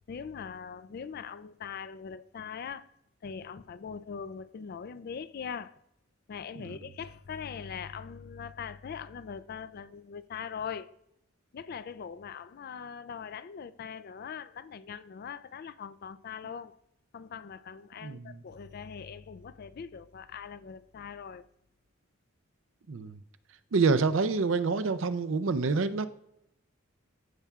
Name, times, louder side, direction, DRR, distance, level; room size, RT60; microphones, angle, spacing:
voice 1, 0.1-2.9 3.2-5.8 6.3-10.9 11.5-16.8 17.1-21.5, left 6 dB, 45° left, 0.3 m, -41 dB
voice 2, 18.0-18.4 22.9-23.2 23.7-26.1, right 4 dB, 65° right, 0.5 m, -27 dB
15.5 x 5.6 x 2.4 m
head